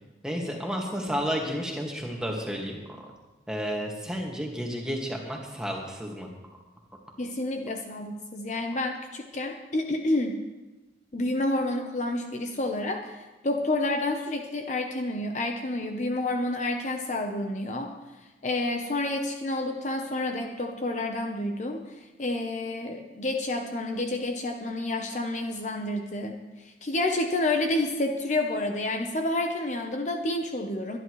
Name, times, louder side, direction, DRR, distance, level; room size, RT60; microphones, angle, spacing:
voice 1, 0.2-3.1 3.5-6.3, equal, 5° right, -1 dB, 1.9 m, -32 dB
voice 2, 7.2-10.4 11.1-17.9 18.4-21.9 22.2-26.4 26.8-31.0, left 2 dB, 40° left, 4 dB, 0.8 m, -29 dB
22.5 x 10.5 x 3.2 m, 1.1 s
head